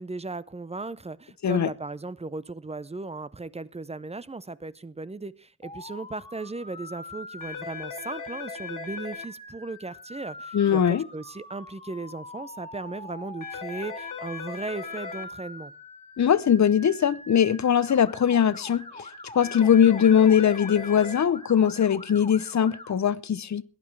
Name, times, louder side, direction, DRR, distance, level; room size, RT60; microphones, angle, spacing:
voice 1, 0.0-15.7, right 3 dB, 20° right, 0.7 m, -37 dB
Motor vehicle (road) / Siren, 5.6-22.9, left 2 dB, 20° left, 2.1 m, -44 dB
sound 1, 7.4-9.2 13.4-15.2 19.4-21.2, left 6 dB, 90° left, 2.5 m, -38 dB
voice 2, 10.5-11.0 16.2-19.1 19.3-23.6, left 8 dB, 65° left, 0.8 m, -21 dB
18.0 x 11.0 x 4.7 m
wide cardioid pair, 120°, 31 cm